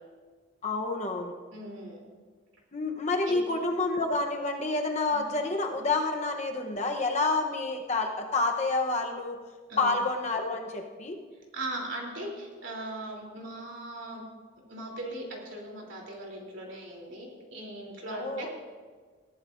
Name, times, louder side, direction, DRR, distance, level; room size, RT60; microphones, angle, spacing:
voice 1, 0.6-1.3 2.7-9.4 9.8-11.2 18.1-18.5, left 3 dB, 30° left, 3 dB, 0.9 m, -29 dB
voice 2, 1.5-2.1 3.2-3.4 5.1-5.3 9.7-10.0 11.5-14.2 14.7-18.5, right 1 dB, 60° right, -1 dB, 3.3 m, -39 dB
20.0 x 14.0 x 2.6 m, 1.5 s
head